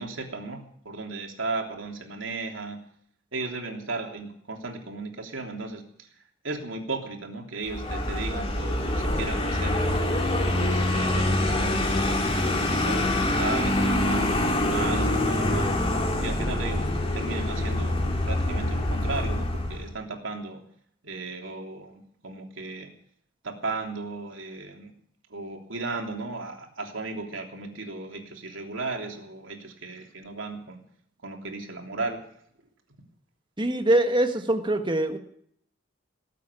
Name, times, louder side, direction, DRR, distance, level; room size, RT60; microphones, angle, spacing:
voice 1, 0.0-2.8 3.3-6.1 6.4-10.0 10.5-15.7 16.2-16.9 17.1-20.6 21.0-22.9 23.4-24.9 25.3-30.8 31.2-32.2, right 3 dB, 80° right, 2 dB, 3.3 m, -35 dB
Vehicle, 7.7-19.9, left 1 dB, 30° left, 2.3 m, -25 dB
voice 2, 33.6-35.2, right 1 dB, 25° right, 6 dB, 1.5 m, -23 dB
19.0 x 8.4 x 8.5 m, 0.66 s
head